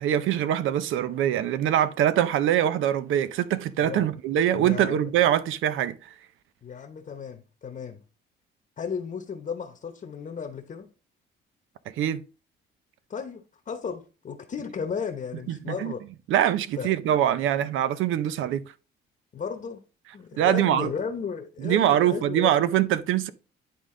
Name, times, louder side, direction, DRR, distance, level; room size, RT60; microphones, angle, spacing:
voice 1, 0.0-6.1 12.0-12.2 15.5-15.9 16.3-18.6 20.4-20.9 21.6-23.3, right 11 dB, 85° right, 0.6 m, -23 dB
voice 2, 4.5-5.1 6.6-8.0 8.8-10.9 13.1-16.0 16.8-16.9 19.3-19.8 20.1-22.5, left 6 dB, 45° left, 1.0 m, -34 dB
10.5 x 3.7 x 3.7 m
cardioid pair, 90°, 20 cm